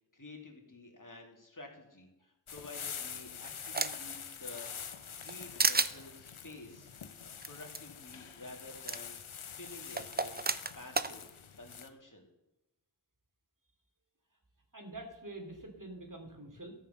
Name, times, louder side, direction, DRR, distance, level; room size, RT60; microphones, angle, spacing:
voice 1, 0.1-9.2 9.5-10.4 10.7-11.3 11.6-12.3, left 2 dB, 40° left, 1 dB, 2.7 m, -51 dB
sound 1, 2.5-11.9, left 7 dB, 85° left, 0.9 m, -45 dB
sound 2, 2.8-4.2 4.6-5.3 5.6-5.9 7.4-7.5 7.7-7.8 8.9-9.0 10.0-11.1, right 3 dB, 20° right, 0.6 m, -32 dB
voice 2, 14.7-16.7, right 2 dB, 40° right, 2 dB, 2.7 m, -46 dB
13.5 x 5.6 x 6.9 m, 0.97 s
wide cardioid pair, 45°, 47 cm